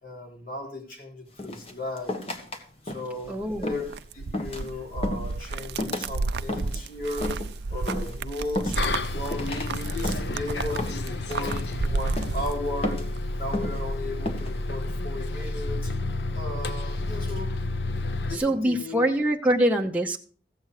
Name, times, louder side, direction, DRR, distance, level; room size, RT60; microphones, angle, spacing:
voice 1, 0.0-2.2 2.8-7.4 7.7-8.8 9.1-13.0 13.3-15.9 16.4-17.6 18.3-19.1, left 2 dB, 55° left, 1 dB, 3.7 m, -36 dB
sound 1, 1.4-2.6 2.9-3.2 3.6-4.0 4.3-4.7 5.0-5.3 5.8-6.1 6.5-6.8 7.2-7.5 7.9-8.2 8.6-9.0 9.3-9.7 10.0-10.4 10.8-11.1 11.5-11.8 12.2-12.5 12.8-13.2 13.5-13.8 14.3-14.5, left 1 dB, 35° left, 1.5 m, -32 dB
Walk - Ice, 3.2-13.2 13.5-14.4, right 3 dB, 75° right, 0.5 m, -33 dB
voice 2, 3.3-3.9 18.3-20.2, right 1 dB, 10° right, 0 dB, 0.8 m, -24 dB
Bus, 8.8-18.4, left 2 dB, 80° left, 0.7 m, -31 dB
15.0 x 8.0 x 4.8 m, 0.44 s
head